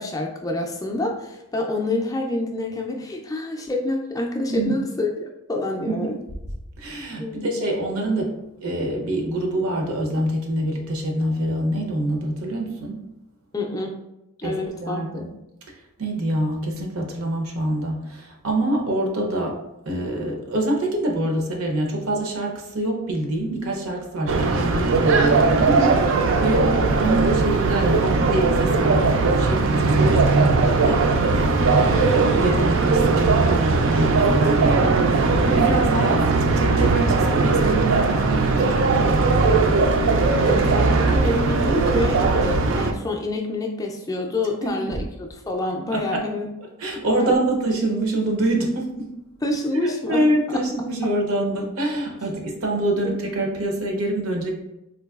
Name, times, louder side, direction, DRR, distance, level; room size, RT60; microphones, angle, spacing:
voice 1, 0.0-6.2 7.2-7.5 13.5-13.9 14.4-15.3 40.5-46.5 47.1-47.5 49.4-50.3 50.8-51.1 53.0-53.2, left 2 dB, 15° left, 1 dB, 0.3 m, -27 dB
voice 2, 4.5-4.8 5.8-5.9 6.8-8.3 8.6-13.0 14.4-15.3 15.7-19.6 19.9-39.8 44.6-45.0 45.9-46.2 46.8-49.1 49.8-54.5, right 1 dB, 85° right, 1 dB, 0.7 m, -26 dB
sound 1, 24.3-42.9, right 3 dB, 60° right, 0.3 m, -19 dB
3.8 x 2.6 x 2.3 m, 0.90 s
head